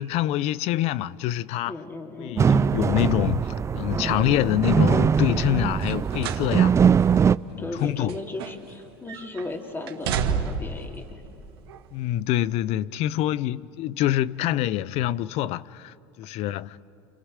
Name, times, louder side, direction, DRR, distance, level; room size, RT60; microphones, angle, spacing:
voice 1, 0.0-1.8 2.2-6.8 7.5-8.1 11.9-16.8, left 13 dB, 60° left, 0.7 m, -26 dB
voice 2, 1.6-2.4 7.6-11.2, left 2 dB, 15° left, 2.8 m, -36 dB
sound 1, 2.4-7.4, right 7 dB, 25° right, 0.5 m, -21 dB
sound 2, 5.7-6.5 6.9-7.0 7.8-8.8 9.1-9.5 9.9-10.8 11.7-11.8, right 7 dB, 85° right, 1.8 m, -30 dB
30.0 x 28.0 x 6.6 m
supercardioid pair, 100°, 12 cm